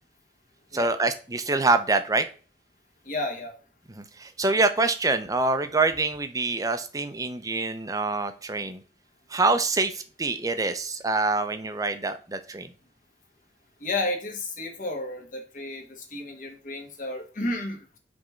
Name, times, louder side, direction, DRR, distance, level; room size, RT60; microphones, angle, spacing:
voice 1, 0.7-2.3 4.0-8.8 9.3-12.7, right 3 dB, 20° right, 9 dB, 0.6 m, -25 dB
voice 2, 3.0-3.5 13.8-18.0, left 2 dB, 50° left, 4 dB, 1.4 m, -32 dB
5.1 x 3.6 x 5.6 m, 0.37 s
head